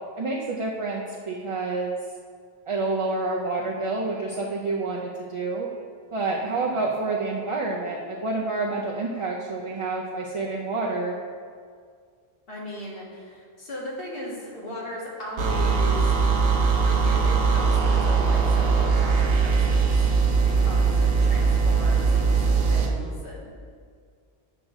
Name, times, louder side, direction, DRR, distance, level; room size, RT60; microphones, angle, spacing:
voice 1, 0.2-1.9 2.7-5.7 6.1-11.2, right 3 dB, 40° right, -3 dB, 0.5 m, -28 dB
voice 2, 6.5-6.8 12.5-16.2 16.7-20.2 20.5-23.5, left 1 dB, 60° left, -5 dB, 1.8 m, -37 dB
sound 1, 15.4-22.9, right 5 dB, 65° right, 0.9 m, -21 dB
7.7 x 3.8 x 6.3 m, 2.1 s
omnidirectional pair, 1.1 m